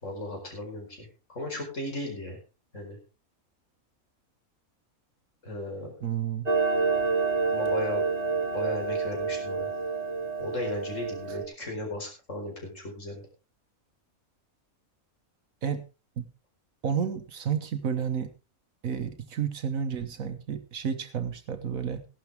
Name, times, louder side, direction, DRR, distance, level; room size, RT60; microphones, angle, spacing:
voice 1, 0.0-2.4 2.7-3.0 5.4-5.9 7.5-8.0 8.5-9.7 10.4-13.2, left 1 dB, 60° left, 2 dB, 5.0 m, -36 dB
voice 2, 6.0-6.5 15.6-15.8 16.2-16.3 16.8-18.3 18.8-22.1, right 7 dB, 70° right, 9 dB, 1.5 m, -31 dB
Clock, 6.5-11.4, right 4 dB, 30° right, 2.2 m, -28 dB
15.5 x 12.0 x 3.5 m, 0.31 s
omnidirectional pair, 1.5 m